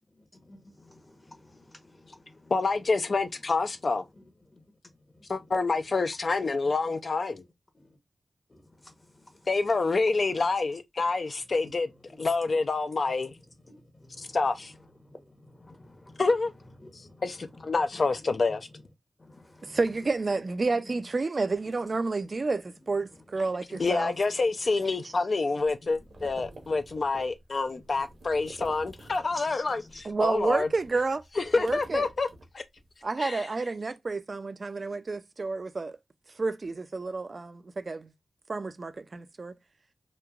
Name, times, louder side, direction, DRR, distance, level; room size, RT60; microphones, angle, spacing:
voice 1, 0.1-2.5 4.1-5.5 7.7-8.0 8.5-9.6 10.4-10.5 11.6-11.7 12.0-12.3 13.0-13.3 13.6-16.2 16.7-17.6 17.9-18.0 18.3-18.8 19.2-19.8 20.3-20.9 23.1-24.4 24.9-27.2 27.7-28.0 28.7-30.0, left 1 dB, 30° left, 0.8 m, -52 dB
voice 2, 2.5-4.0 5.3-7.4 9.5-11.9 12.2-13.3 14.2-14.7 16.2-16.5 17.2-18.7 23.8-30.7 31.4-32.3 32.5-32.6 33.2-33.5, left 3 dB, 60° left, 0.3 m, -27 dB
voice 3, 19.6-24.1 30.0-31.2 31.6-32.1 33.0-36.0 36.4-38.1 38.5-39.5, right 3 dB, 50° right, 0.3 m, -30 dB
sound 1, 25.6-29.5 29.8-32.9, right 2 dB, 75° right, 0.8 m, -49 dB
3.0 x 2.1 x 2.3 m
cardioid pair, 65°, 0 cm